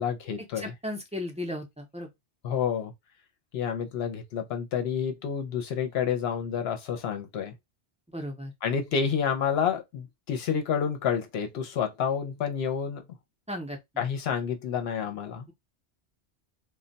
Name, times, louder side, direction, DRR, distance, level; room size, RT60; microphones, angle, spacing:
voice 1, 0.0-0.7 2.4-2.9 3.5-7.5 8.6-13.0 14.0-15.5, left 7 dB, 70° left, 0.8 m, -29 dB
voice 2, 0.6-2.1 8.1-8.5 13.5-14.1, left 1 dB, 10° right, 0.4 m, -36 dB
2.2 x 2.1 x 3.8 m
omnidirectional pair, 1.1 m